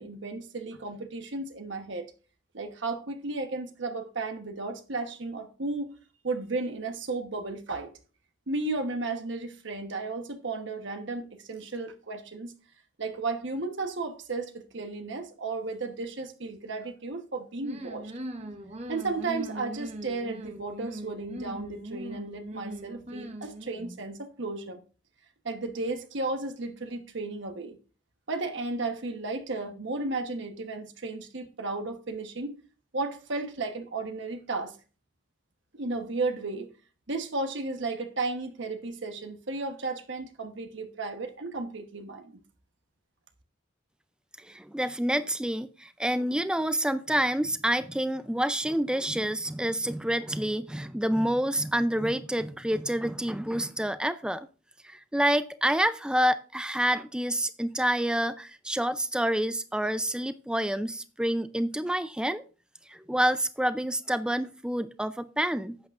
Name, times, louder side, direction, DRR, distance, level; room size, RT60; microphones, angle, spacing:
voice 1, 0.0-2.1 2.5-5.9 6.2-7.9 8.5-12.5 13.0-18.1 18.9-24.8 25.4-27.8 28.3-32.6 32.9-34.8 35.7-36.7 37.1-42.4, right 3 dB, 65° right, 1.1 m, -34 dB
sound 1, 17.6-24.0, right 1 dB, 30° right, 0.9 m, -40 dB
voice 2, 44.4-54.5 54.8-62.4 62.9-65.8, right 1 dB, 5° right, 0.4 m, -28 dB
11.0 x 8.4 x 2.5 m
head